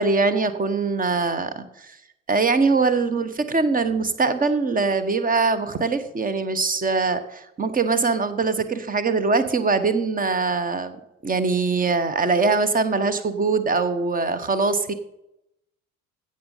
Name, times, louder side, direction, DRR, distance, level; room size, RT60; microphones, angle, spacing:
voice 1, 0.0-2.0 2.3-11.0 11.2-14.9, right 4 dB, 20° right, 12 dB, 1.2 m, -22 dB
16.0 x 6.5 x 5.7 m, 0.85 s
figure-of-eight pair, 60°, 40 cm